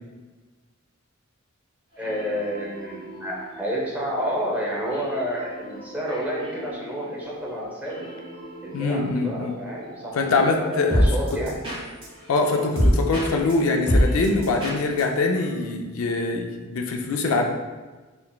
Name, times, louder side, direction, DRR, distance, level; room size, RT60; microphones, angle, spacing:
sound 1, 1.9-15.6, equal, 25° right, 1.4 m, -29 dB
voice 1, 2.0-7.9 8.6-11.5, equal, 10° right, -5 dB, 0.7 m, -30 dB
voice 2, 8.7-9.5 10.2-11.4 12.3-17.5, left 3 dB, 80° left, 3 dB, 0.4 m, -23 dB
3.8 x 3.4 x 2.3 m, 1.3 s
head